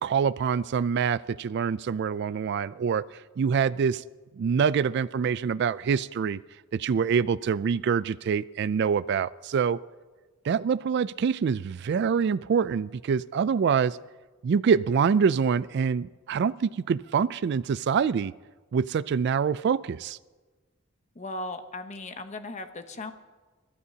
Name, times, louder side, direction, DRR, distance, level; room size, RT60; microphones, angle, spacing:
voice 1, 0.0-3.0 3.4-4.0 4.4-6.4 6.7-9.8 10.4-14.0 14.4-18.3 18.7-20.2, right 6 dB, 55° right, 16 dB, 0.3 m, -25 dB
voice 2, 21.1-23.1, left 2 dB, 35° left, 8 dB, 1.0 m, -37 dB
29.0 x 12.5 x 2.8 m, 1.3 s
head